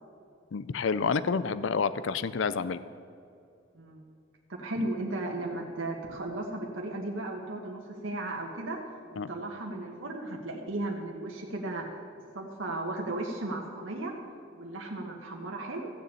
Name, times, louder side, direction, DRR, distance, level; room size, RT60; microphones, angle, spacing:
voice 1, 0.5-2.8 9.2-9.3, left 5 dB, 70° left, 15 dB, 0.5 m, -29 dB
voice 2, 4.5-8.8 9.1-11.8 12.3-14.1 14.5-15.9, right 2 dB, 80° right, 0 dB, 1.4 m, -35 dB
15.0 x 7.0 x 8.3 m, 2.5 s
head